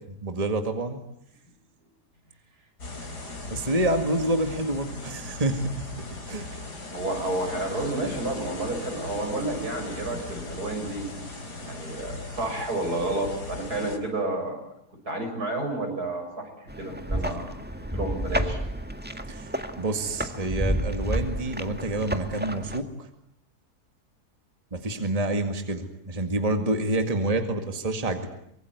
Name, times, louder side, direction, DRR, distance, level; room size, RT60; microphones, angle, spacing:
voice 1, 0.1-1.0 3.5-5.9 6.3-6.5 19.3-23.1 24.7-28.3, right 2 dB, 25° right, 6 dB, 2.1 m, -28 dB
sound 1, 2.8-14.0, left 2 dB, 85° left, 4.5 m, -38 dB
voice 2, 6.9-11.1 11.6-14.6 15.1-17.6 17.9-18.6, right 2 dB, 70° right, 4 dB, 7.2 m, -30 dB
sound 2, 16.7-22.8, equal, 5° right, 1.6 m, -31 dB
25.0 x 23.5 x 9.6 m, 0.72 s
omnidirectional pair, 1.7 m